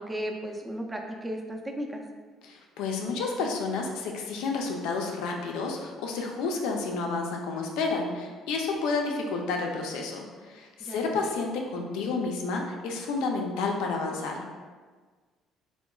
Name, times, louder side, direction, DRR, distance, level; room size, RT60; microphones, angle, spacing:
voice 1, 0.0-2.0 10.8-11.3, equal, 15° right, 2 dB, 0.4 m, -35 dB
voice 2, 2.4-14.4, left 4 dB, 85° left, 1 dB, 0.4 m, -30 dB
3.7 x 2.1 x 2.2 m, 1.4 s
cardioid pair, 90°, 0 cm